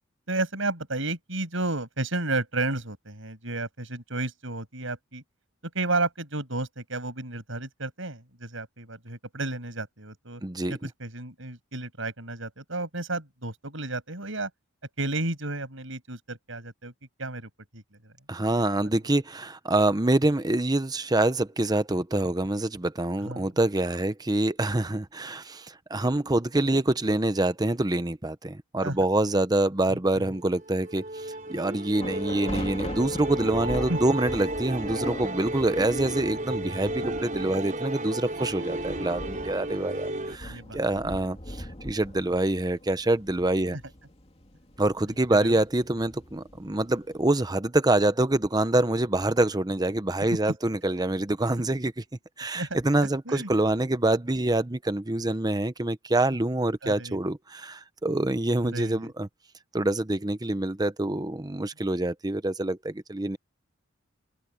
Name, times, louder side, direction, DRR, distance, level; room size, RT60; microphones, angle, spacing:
voice 1, 0.3-5.2 5.7-10.4 10.7-14.5 15.0-16.9 17.2-18.1 18.8-18.9 23.2-23.5 28.8-29.0 30.1-30.3 33.9-34.0 40.4-40.8 43.7-43.8 45.1-45.6 52.5-52.8 53.3-53.5 56.8-57.2 58.7-59.1, right 2 dB, 70° right, 7.1 m, -32 dB
voice 2, 10.4-10.7 18.3-43.8 44.8-52.0 52.4-59.3 59.7-63.4, right 2 dB, 20° right, 0.8 m, -26 dB
Musical instrument, 30.3-40.4, right 1 dB, 40° right, 5.0 m, -33 dB
sound 1, 32.0-47.3, left 1 dB, 30° left, 2.8 m, -41 dB
open air
head